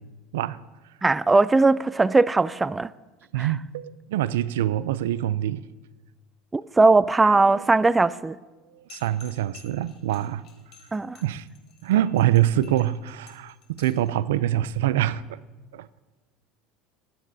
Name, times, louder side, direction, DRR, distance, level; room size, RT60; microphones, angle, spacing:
voice 1, 1.0-2.9 3.4-3.5 6.5-8.4 10.9-11.2, right 3 dB, 15° right, 0.3 m, -19 dB
voice 2, 3.3-5.6 7.5-7.7 8.7-10.4 11.2-11.5 11.8-15.4 15.7-16.0, right 13 dB, 85° right, 0.4 m, -25 dB
sound 1, 8.9-14.1, left 8 dB, 60° left, 3.4 m, -51 dB
22.5 x 10.5 x 2.7 m
supercardioid pair, 100°, 0 cm